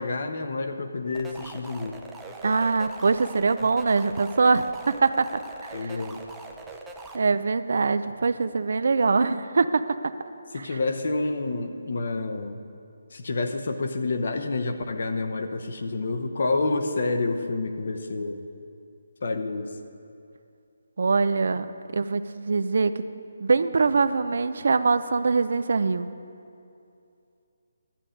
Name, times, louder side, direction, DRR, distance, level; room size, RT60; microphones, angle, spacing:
voice 1, 0.0-2.0 5.7-6.2 10.5-12.6 13.1-18.4 19.2-19.7, left 3 dB, 55° left, 6 dB, 0.8 m, -28 dB
sound 1, 1.1-7.2, right 2 dB, 5° right, 0.5 m, -42 dB
voice 2, 2.4-5.3 5.6-6.0 7.1-9.8 21.0-21.7 21.9-23.0 23.4-26.1, right 4 dB, 60° right, 12 dB, 0.4 m, -23 dB
12.0 x 8.5 x 5.1 m, 2.6 s
hypercardioid pair, 165°, 0 cm